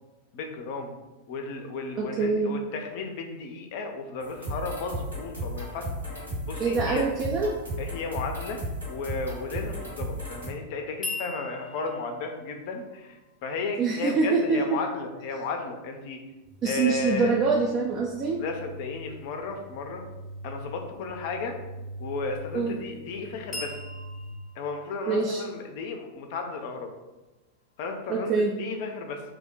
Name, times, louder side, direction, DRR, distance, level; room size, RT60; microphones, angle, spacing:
voice 1, 0.3-0.9 1.3-7.1 7.8-16.2 16.6-17.4 18.4-20.0 20.4-21.6 22.0-23.7 24.6-26.9 27.8-29.2, left 3 dB, 50° left, 4 dB, 0.4 m, -34 dB
voice 2, 2.0-2.6 6.6-7.5 13.8-14.8 16.6-18.4 22.5-22.8 25.1-25.4 28.1-28.6, right 4 dB, 35° right, -1 dB, 0.3 m, -25 dB
sound 1, 4.2-10.5, equal, 70° right, 1.3 m, -35 dB
sound 2, 11.0-15.1 23.5-27.3, left 3 dB, 15° left, 0.7 m, -42 dB
sound 3, 16.4-24.3, left 1 dB, 20° right, 0.7 m, -43 dB
2.5 x 2.1 x 3.8 m, 1.1 s
figure-of-eight pair, 90°, 0 cm